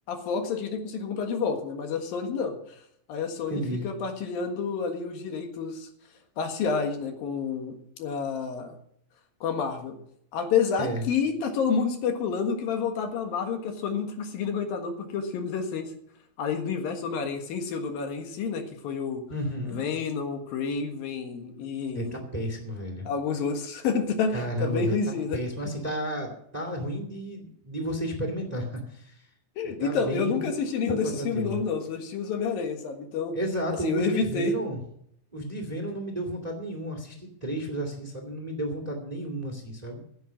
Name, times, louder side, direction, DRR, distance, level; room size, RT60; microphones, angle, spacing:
voice 1, 0.1-2.6 3.1-5.9 6.4-8.7 9.4-10.0 10.3-15.9 16.4-19.2 19.7-22.2 23.1-25.4 29.6-33.4 33.8-34.6, left 5 dB, 80° left, 5 dB, 3.4 m, -29 dB
voice 2, 3.5-3.9 10.8-11.0 19.3-19.8 21.9-23.1 24.3-29.2 29.6-30.5 30.9-31.6 33.3-34.8 35.3-40.0, right 1 dB, 15° right, 4 dB, 1.8 m, -32 dB
16.0 x 8.1 x 6.2 m, 0.71 s
omnidirectional pair, 4.1 m